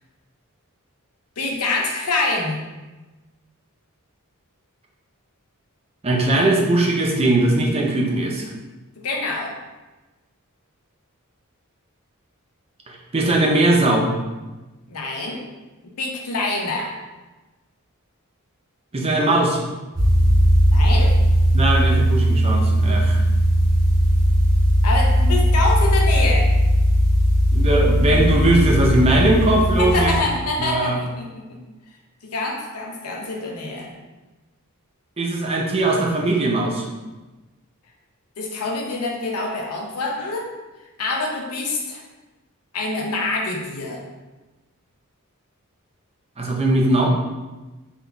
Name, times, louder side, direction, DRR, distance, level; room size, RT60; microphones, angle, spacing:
voice 1, 1.4-2.6 9.0-9.6 14.9-15.4 16.0-16.9 20.7-21.2 24.8-26.5 29.8-31.6 32.2-33.9 38.4-40.5 41.0-42.0 42.7-44.0, left 2 dB, 90° left, 0 dB, 0.7 m, -25 dB
voice 2, 6.0-8.5 12.9-14.1 18.9-19.6 21.5-23.2 27.5-30.1 30.6-31.0 35.2-36.9 46.4-47.1, right 2 dB, 25° right, -1 dB, 0.5 m, -19 dB
sound 1, 19.9-30.2, equal, 5° left, 1.0 m, -17 dB
3.9 x 3.6 x 2.3 m, 1.1 s
head